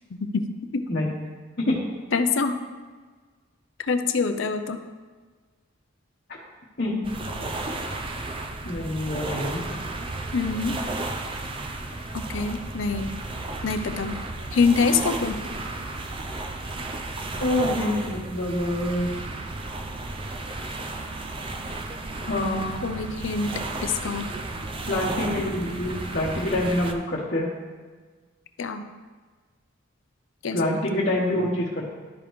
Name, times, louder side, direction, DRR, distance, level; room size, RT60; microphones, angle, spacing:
voice 1, 2.1-2.6 3.9-4.8 10.3-10.8 12.1-13.2 13.6-14.2 14.5-15.4 22.8-23.5 23.8-24.3 28.6-28.9 30.4-30.8, left 4 dB, 65° left, 8 dB, 0.5 m, -25 dB
voice 2, 6.8-7.1 8.6-9.7 17.4-19.1 22.2-22.7 24.9-27.5 30.5-31.9, left 1 dB, 45° left, -6 dB, 1.1 m, -26 dB
sound 1, 7.0-26.9, right 2 dB, 25° right, 0.4 m, -33 dB
12.0 x 5.0 x 3.1 m, 1.4 s
head